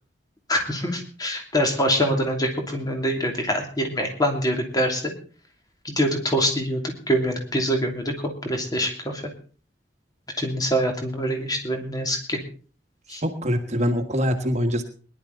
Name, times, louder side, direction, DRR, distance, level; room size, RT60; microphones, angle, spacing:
voice 1, 0.5-5.1 5.8-9.2 10.4-12.4 13.1-13.2, equal, 20° left, 3 dB, 2.9 m, -25 dB
voice 2, 13.1-14.8, equal, 40° right, 6 dB, 1.6 m, -24 dB
21.0 x 11.5 x 4.1 m, 0.39 s
head